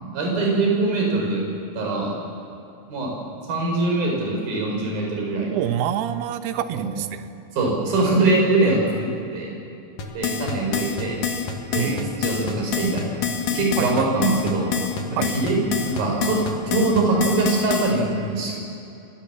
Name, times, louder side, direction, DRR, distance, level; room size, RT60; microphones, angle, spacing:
voice 1, 0.0-1.4 1.8-2.1 2.9-3.1 3.5-5.5 6.7-6.9 7.5-9.5 10.1-11.2 11.7-11.9 12.2-13.1 13.5-14.7 15.1-15.6 15.9-16.4 16.7-18.5, right 2 dB, 65° right, -1 dB, 7.1 m, -22 dB
voice 2, 5.5-7.3 11.7-12.3 13.8-14.1 15.2-15.3, right 10 dB, 80° right, 9 dB, 3.0 m, -27 dB
sound 1, 10.0-17.9, left 7 dB, 60° left, 3.3 m, -26 dB
26.5 x 21.0 x 7.2 m, 2.7 s
omnidirectional pair, 4.6 m